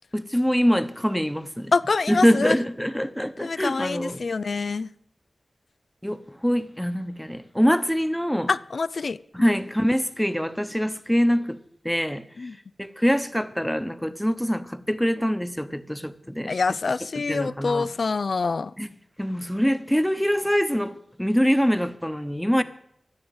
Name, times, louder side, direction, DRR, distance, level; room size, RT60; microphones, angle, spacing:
voice 1, 0.1-1.7 2.1-4.2 6.0-8.5 9.3-12.5 12.8-16.6 17.3-17.9 18.8-18.9 19.2-22.6, equal, 5° left, 1.0 m, -24 dB
voice 2, 1.7-2.6 3.4-4.9 8.5-9.5 12.4-12.6 16.5-18.7, left 4 dB, 70° left, 0.4 m, -26 dB
13.5 x 8.8 x 8.1 m
wide cardioid pair, 60°, 0 cm